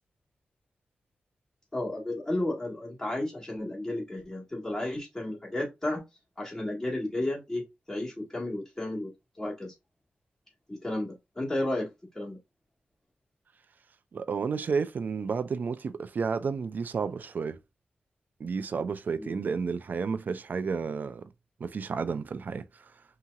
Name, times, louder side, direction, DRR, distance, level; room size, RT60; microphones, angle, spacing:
voice 1, 1.7-6.0 6.4-9.1 9.4-9.7 10.7-11.9 12.1-12.4 19.2-19.4, left 1 dB, 10° left, 1.8 m, -33 dB
voice 2, 14.1-17.6 18.4-21.2 21.6-22.9, right 5 dB, 60° right, 0.4 m, -31 dB
5.7 x 2.9 x 2.4 m
wide cardioid pair, 105°, 3 cm